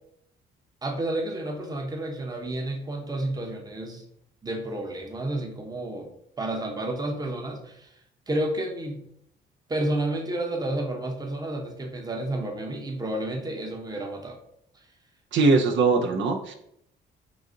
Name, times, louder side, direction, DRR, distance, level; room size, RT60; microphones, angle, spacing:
voice 1, 0.8-4.0 4.4-6.1 6.4-7.9 8.3-9.0 9.7-14.4 14.7-14.8, right 1 dB, 20° right, 2 dB, 0.8 m, -31 dB
voice 2, 15.3-16.5, right 3 dB, 70° right, 3 dB, 0.5 m, -21 dB
4.0 x 2.6 x 3.7 m, 0.74 s
cardioid pair, 90°, 20 cm